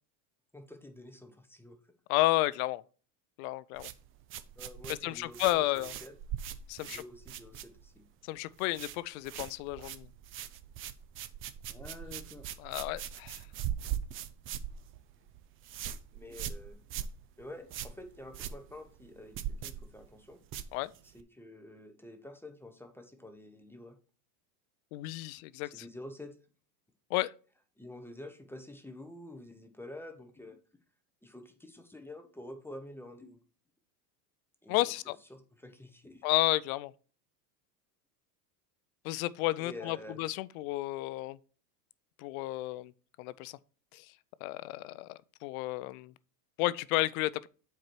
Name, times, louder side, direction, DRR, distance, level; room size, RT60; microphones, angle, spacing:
voice 1, 0.5-1.8 4.6-6.1 6.8-8.0 11.7-12.5 16.1-16.8 17.4-20.4 21.0-24.0 25.7-26.3 27.8-30.6 31.2-33.4 34.6-34.9 35.3-36.2 39.6-40.2, left 1 dB, 5° left, 0.8 m, -48 dB
voice 2, 2.1-2.8 3.4-3.9 4.9-5.9 6.7-7.0 8.3-10.1 12.6-13.4 20.7-20.9 24.9-25.8 27.1-27.3 34.7-35.2 36.2-36.9 39.0-41.4 42.2-42.9 43.2-43.6 43.9-44.1 44.4-46.1 46.6-47.5, left 18 dB, 60° left, 0.5 m, -32 dB
sound 1, 3.7-8.1 8.4-9.0 9.2-21.2, right 10 dB, 30° right, 0.4 m, -41 dB
7.6 x 4.7 x 4.4 m
supercardioid pair, 120°, 48 cm